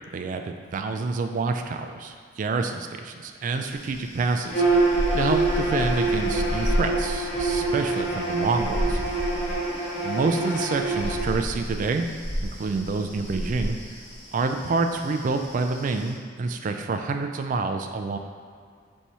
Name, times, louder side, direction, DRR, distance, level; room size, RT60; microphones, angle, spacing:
voice 1, 0.1-9.0 10.0-12.1 12.4-13.8 14.3-18.2, right 3 dB, 45° right, 5 dB, 0.3 m, -28 dB
sound 1, 3.7-16.1, equal, 35° left, 1.2 m, -33 dB
Bowed string instrument, 4.5-11.2, right 2 dB, 50° left, 1.0 m, -26 dB
4.2 x 2.7 x 4.6 m, 2.1 s
head